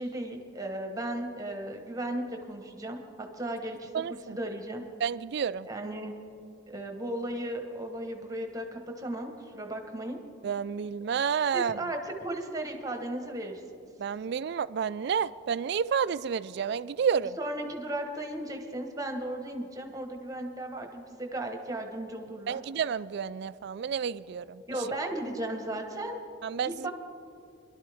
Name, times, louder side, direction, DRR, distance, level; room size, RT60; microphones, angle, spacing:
voice 1, 0.0-4.8 5.7-6.1 6.7-10.2 11.5-13.6 17.4-22.6 24.7-26.2 26.6-26.9, right 1 dB, 15° right, 3 dB, 1.2 m, -36 dB
voice 2, 3.9-4.4 5.0-5.7 10.4-11.8 14.0-17.4 22.5-24.6 26.4-26.9, right 7 dB, 55° right, 16 dB, 0.3 m, -30 dB
22.0 x 12.0 x 3.5 m, 2.4 s
head